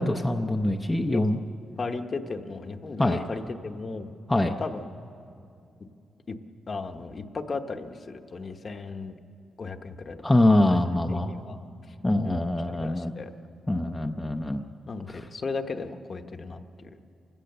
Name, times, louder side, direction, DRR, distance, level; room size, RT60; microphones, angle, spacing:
voice 1, 0.0-1.4 3.0-3.2 4.3-4.6 10.2-11.3 12.0-13.1 13.7-14.6 15.1-15.2, left 1 dB, 10° left, 2 dB, 0.6 m, -24 dB
voice 2, 1.8-4.1 4.6-4.9 6.3-6.4 6.7-9.2 9.6-10.2 10.7-10.8 11.1-11.6 12.2-13.3 14.9-16.9, left 4 dB, 35° left, 7 dB, 1.0 m, -35 dB
28.5 x 16.5 x 6.7 m, 2.6 s
wide cardioid pair, 145°, 0 cm